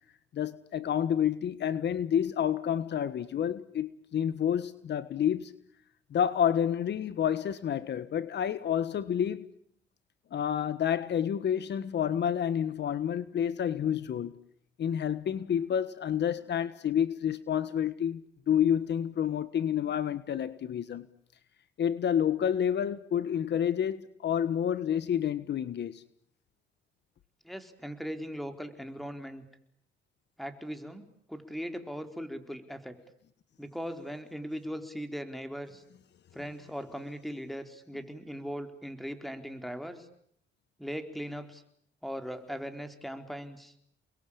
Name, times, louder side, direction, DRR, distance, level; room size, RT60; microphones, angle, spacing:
voice 1, 0.3-5.5 6.1-9.4 10.3-14.3 14.8-21.1 21.8-26.0, left 9 dB, 60° left, 1.4 m, -29 dB
voice 2, 27.4-29.5 30.4-33.0 33.6-35.8 36.3-40.1 40.8-41.6 42.0-43.7, equal, ahead, 4.2 m, -39 dB
30.0 x 21.5 x 8.8 m
cardioid pair, 90°, 20 cm